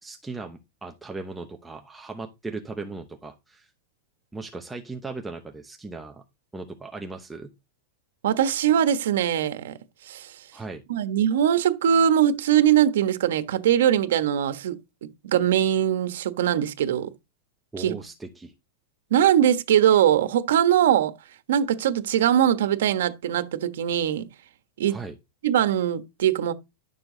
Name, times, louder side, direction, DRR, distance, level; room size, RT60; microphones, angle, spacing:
voice 1, 0.0-3.7 4.3-6.2 6.5-7.5 10.5-10.8 17.7-18.5 24.9-25.1, right 3 dB, 5° right, 0.9 m, -37 dB
voice 2, 8.2-9.7 10.1-10.3 10.9-17.1 17.8-17.9 19.1-21.1 21.5-24.3 24.8-25.0 25.4-26.5, right 10 dB, 85° right, 1.3 m, -21 dB
11.5 x 6.9 x 3.9 m
supercardioid pair, 160°, 0 cm